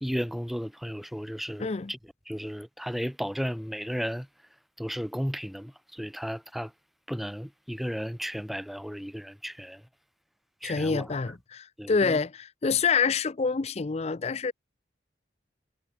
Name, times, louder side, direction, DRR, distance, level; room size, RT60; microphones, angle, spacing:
voice 1, 0.0-2.0 2.3-4.3 4.8-6.7 7.1-9.8 10.6-11.0 11.8-12.2, equal, ahead, 1.7 m, -34 dB
voice 2, 1.6-1.9 10.6-14.5, left 5 dB, 35° left, 0.5 m, -27 dB
head